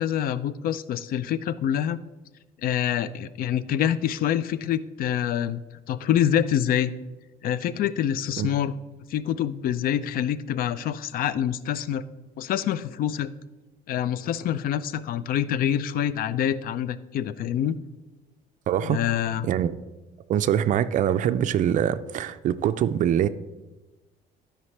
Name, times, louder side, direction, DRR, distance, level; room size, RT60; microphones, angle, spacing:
voice 1, 0.0-2.0 2.6-5.6 5.9-6.9 7.4-8.7 9.1-12.0 12.4-13.3 13.9-17.8 18.9-19.5, left 10 dB, 60° left, 0.4 m, -26 dB
voice 2, 18.7-19.0 19.4-19.7 20.3-23.3, right 10 dB, 50° right, 0.4 m, -23 dB
12.5 x 5.0 x 3.3 m
cardioid pair, 110°, 17 cm